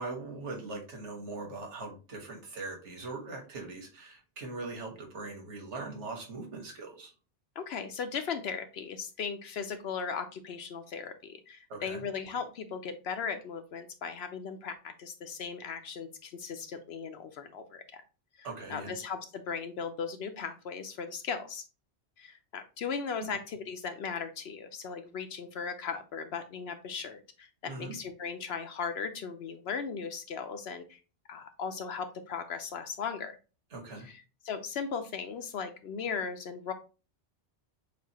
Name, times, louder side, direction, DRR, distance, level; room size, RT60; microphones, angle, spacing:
voice 1, 0.0-7.1 11.7-12.1 18.4-19.0 23.2-23.4 27.7-28.0 33.7-34.1, right 3 dB, 90° right, 2 dB, 1.6 m, -41 dB
voice 2, 7.6-18.0 18.4-21.6 22.2-31.0 31.3-33.4 34.1-36.7, left 6 dB, 70° left, 8 dB, 0.8 m, -37 dB
6.8 x 2.6 x 2.8 m, 0.33 s
omnidirectional pair, 1.2 m